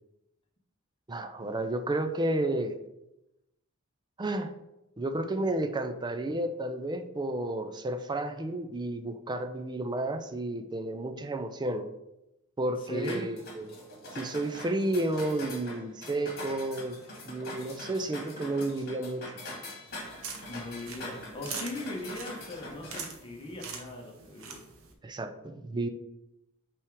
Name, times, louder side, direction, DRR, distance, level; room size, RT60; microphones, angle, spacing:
voice 1, 1.1-2.8 4.2-4.5 5.0-11.9 12.6-13.8 14.1-17.0 17.3-19.4 25.0-25.9, right 1 dB, 20° right, 8 dB, 0.4 m, -32 dB
voice 2, 12.8-13.3 20.4-24.6, left 1 dB, 25° left, -1 dB, 1.2 m, -39 dB
sound 1, 13.0-23.0, left 1 dB, 50° left, 1.9 m, -43 dB
sound 2, 19.9-24.9, right 5 dB, 70° right, 0.9 m, -44 dB
5.6 x 3.5 x 4.8 m, 0.91 s
head